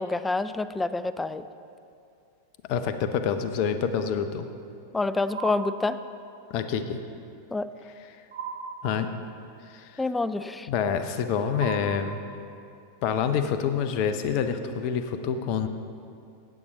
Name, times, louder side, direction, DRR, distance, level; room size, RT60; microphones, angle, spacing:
voice 1, 0.0-1.4 4.9-6.0 7.5-7.7 10.0-10.7, left 3 dB, 10° left, 13 dB, 0.3 m, -27 dB
voice 2, 2.7-4.5 6.5-7.0 8.8-9.1 9.7-10.0 10.7-12.2 13.0-15.7, left 7 dB, 45° left, 9 dB, 0.6 m, -27 dB
sound 1, 5.3-6.5 8.3-9.5 11.5-12.8, right 5 dB, 65° right, 0.8 m, -38 dB
9.2 x 8.3 x 5.0 m, 2.5 s
figure-of-eight pair, 90°, 0 cm